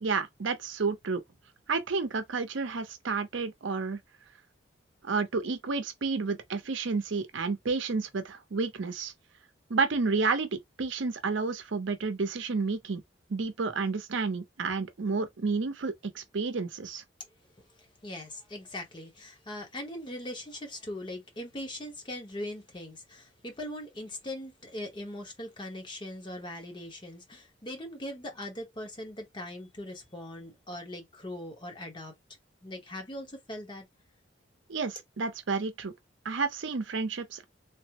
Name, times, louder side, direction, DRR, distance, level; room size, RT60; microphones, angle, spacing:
voice 1, 0.0-1.2 1.7-4.0 5.0-9.1 9.7-13.0 13.3-17.0 34.7-35.9 36.2-37.4, right 4 dB, 70° right, 0.6 m, -30 dB
voice 2, 17.7-32.1 32.6-33.9, left 1 dB, 25° left, 0.9 m, -40 dB
3.3 x 2.0 x 2.9 m
head